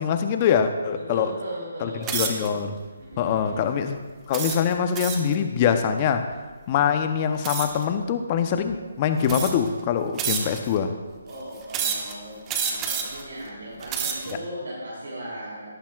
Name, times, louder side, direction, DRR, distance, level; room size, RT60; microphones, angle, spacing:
voice 1, 0.0-1.3 1.8-2.8 3.2-4.0 4.3-6.3 6.7-10.9, left 7 dB, 30° left, 8 dB, 0.8 m, -24 dB
voice 2, 0.9-2.3 3.0-3.7 11.2-15.7, right 1 dB, 85° right, -7 dB, 3.7 m, -37 dB
sound 1, 2.0-2.5 3.1-3.4 4.3-5.3 7.4-7.8 8.7-8.8 9.2-9.7 10.2-10.8 11.7-12.1 12.5-13.2 13.7-14.3, right 6 dB, 15° right, 1.1 m, -29 dB
17.0 x 10.0 x 2.5 m, 1.4 s
hypercardioid pair, 155°, 0 cm